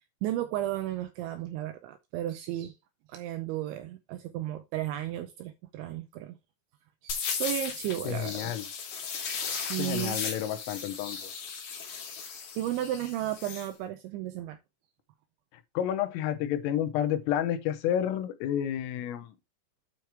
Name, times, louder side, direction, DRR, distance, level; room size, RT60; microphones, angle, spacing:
voice 1, 0.2-2.8 3.1-6.4 7.0-8.5 9.5-10.2 12.6-14.6, right 13 dB, 85° right, 2.6 m, -34 dB
sound 1, 7.1-13.7, left 6 dB, 50° left, 2.9 m, -36 dB
voice 2, 8.0-8.7 9.8-11.2 15.7-19.3, left 10 dB, 85° left, 3.5 m, -30 dB
9.1 x 4.5 x 4.6 m
omnidirectional pair, 5.9 m